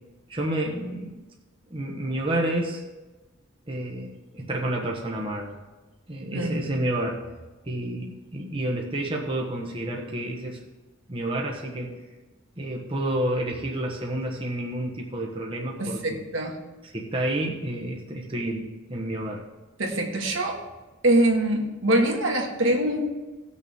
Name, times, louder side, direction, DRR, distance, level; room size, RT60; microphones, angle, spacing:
voice 1, 0.3-1.3 1.7-2.8 3.7-5.6 6.1-7.2 7.6-10.6 11.1-12.0 12.6-16.2 16.8-19.4, right 1 dB, 25° right, -1 dB, 1.2 m, -30 dB
voice 2, 6.3-6.6 15.8-16.6 19.8-20.6 21.0-23.1, right 1 dB, 80° right, 1 dB, 1.7 m, -23 dB
18.0 x 6.4 x 3.6 m, 1.2 s
head